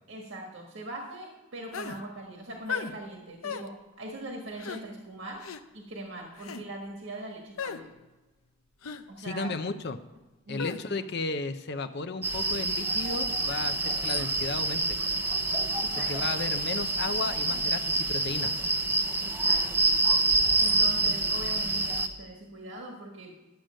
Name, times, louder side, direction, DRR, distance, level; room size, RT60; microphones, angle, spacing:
voice 1, 0.1-5.4 5.7-7.9 9.1-9.6 10.5-11.1 15.8-16.4 19.2-19.8 20.6-23.4, right 1 dB, 65° right, 0 dB, 1.6 m, -41 dB
sound 1, 1.7-2.0 2.7-2.9 3.4-3.7 4.6-4.8 5.4-5.6 6.4-6.6 7.6-7.8 8.8-9.0 10.6-10.8, left 6 dB, 90° left, 0.7 m, -35 dB
voice 2, 9.2-10.0 10.5-15.0 16.1-18.5, left 3 dB, 50° left, 9 dB, 0.6 m, -34 dB
sound 2, 12.2-22.1, right 2 dB, 10° right, 0.6 m, -27 dB
11.5 x 7.7 x 6.3 m, 1.1 s
head